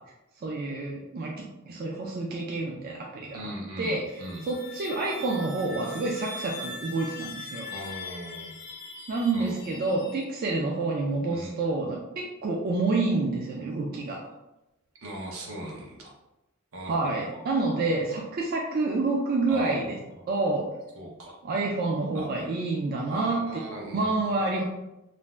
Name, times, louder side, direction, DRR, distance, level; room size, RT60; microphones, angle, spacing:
voice 1, 0.4-3.4 3.8-7.7 9.1-14.2 16.8-20.0 20.3-20.7 21.4-23.5 23.9-24.6, right 3 dB, 45° right, -2 dB, 0.3 m, -28 dB
voice 2, 3.3-4.4 7.7-8.5 9.3-9.6 11.3-11.5 15.0-16.1 16.7-17.0 17.3-17.4 17.8-18.2 19.5-19.8 20.1-20.3 21.0-21.3 22.1-22.3 23.0-24.2 24.5-24.6, right 1 dB, 75° right, -3 dB, 0.8 m, -39 dB
sound 1, 4.0-10.6, left 2 dB, 50° left, 0.6 m, -41 dB
2.5 x 2.1 x 3.1 m, 0.96 s
head